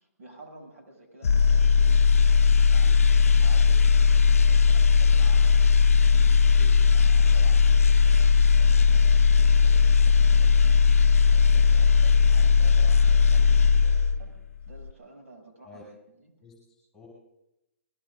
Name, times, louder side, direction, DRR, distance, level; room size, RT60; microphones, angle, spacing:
voice 1, 0.0-2.9 3.2-14.4 14.7-15.9 16.2-16.3, right 2 dB, 75° right, 1 dB, 7.3 m, -50 dB
sound 1, 1.2-14.4 14.7-14.9, left 5 dB, 80° left, 0.5 m, -18 dB
voice 2, 2.8-3.5 15.6-15.8 16.4-17.1, left 5 dB, 5° left, -4 dB, 5.3 m, -53 dB
24.0 x 21.5 x 2.6 m, 0.87 s
hypercardioid pair, 140°, 8 cm